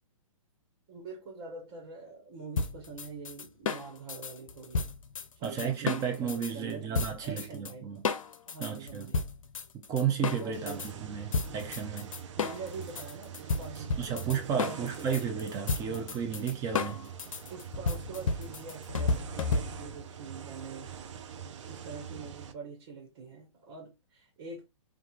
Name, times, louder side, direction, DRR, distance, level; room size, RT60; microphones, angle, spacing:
voice 1, 0.9-4.9 5.3-6.9 7.2-8.0 8.5-9.2 10.3-10.9 12.4-15.3 15.8-16.2 16.8-17.1 17.5-20.9 21.6-24.7, right 4 dB, 45° right, 1.3 m, -44 dB
sound 1, 2.6-6.5 6.9-7.7 8.0-10.9 11.3-20.0, left 4 dB, 80° left, 0.5 m, -33 dB
voice 2, 5.4-8.0 8.6-9.1 9.7-12.1 14.0-17.1, right 7 dB, 20° right, 0.6 m, -33 dB
sound 2, 10.5-22.5, right 8 dB, 65° right, 0.5 m, -44 dB
3.1 x 2.4 x 2.4 m
hypercardioid pair, 135°, 17 cm